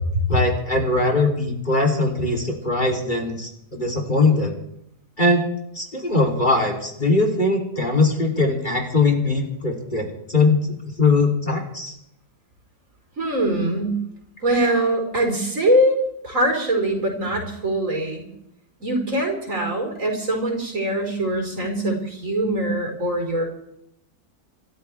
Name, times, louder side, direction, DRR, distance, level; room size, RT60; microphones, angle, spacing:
voice 1, 0.3-4.5 5.2-5.4 5.7-12.0, left 3 dB, 30° left, 2 dB, 3.4 m, -21 dB
voice 2, 13.2-14.0 14.4-18.3 18.8-23.4, right 1 dB, 60° right, 2 dB, 5.1 m, -22 dB
25.5 x 14.0 x 3.5 m, 0.76 s
omnidirectional pair, 1.6 m